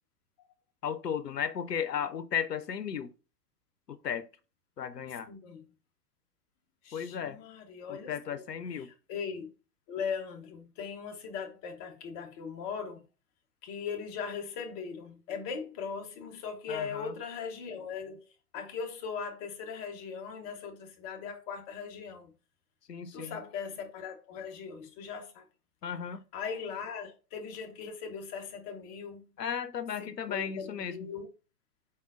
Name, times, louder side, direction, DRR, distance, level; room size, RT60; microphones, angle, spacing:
voice 1, 0.8-3.1 3.9-4.3 4.8-5.3 6.9-7.4 7.9-8.9 16.7-17.2 22.9-23.4 25.8-26.2 29.4-31.1, left 8 dB, 85° left, 0.6 m, -35 dB
voice 2, 5.3-5.7 6.8-8.4 8.8-9.5 9.9-13.0 13.6-18.2 18.5-22.3 23.1-25.4 26.3-29.2 30.0-31.3, left 6 dB, 25° left, 0.7 m, -39 dB
4.3 x 3.5 x 2.5 m
figure-of-eight pair, 110°, 47 cm